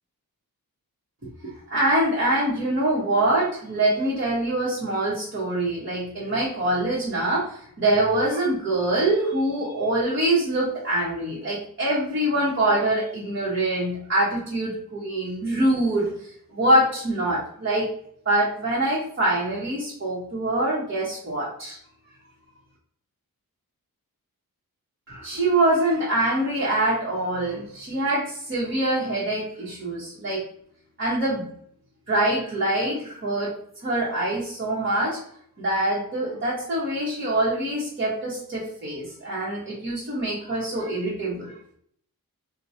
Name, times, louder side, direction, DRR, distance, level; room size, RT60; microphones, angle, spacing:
voice 1, 1.4-17.9 18.2-21.8 25.1-30.4 31.0-31.4 32.1-33.5 33.8-35.2 35.6-41.5, right 1 dB, 35° right, -8 dB, 1.0 m, -24 dB
4.4 x 2.2 x 2.6 m, 0.65 s
wide cardioid pair, 165°, 35 cm